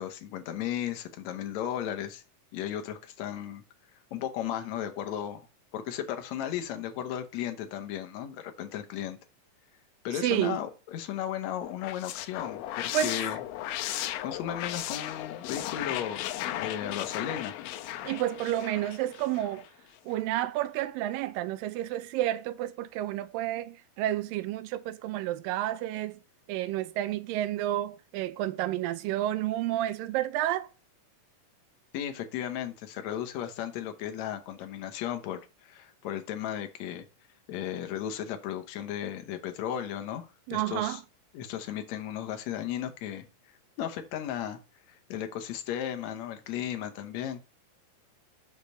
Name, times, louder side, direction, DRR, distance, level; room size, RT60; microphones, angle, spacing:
voice 1, 0.0-2.2 2.5-3.6 4.1-5.5 5.7-9.2 10.0-13.4 14.2-17.5 31.9-37.1 37.5-41.0 41.3-43.3 43.8-44.6 44.9-47.4, left 10 dB, 70° left, 1.9 m, -35 dB
voice 2, 10.1-10.6 12.9-13.2 18.0-19.7 20.1-26.2 26.5-30.7 40.5-41.0, right 13 dB, 80° right, 2.3 m, -30 dB
sound 1, 11.6-19.7, left 13 dB, 85° left, 2.3 m, -36 dB
6.7 x 5.1 x 6.3 m
omnidirectional pair, 4.1 m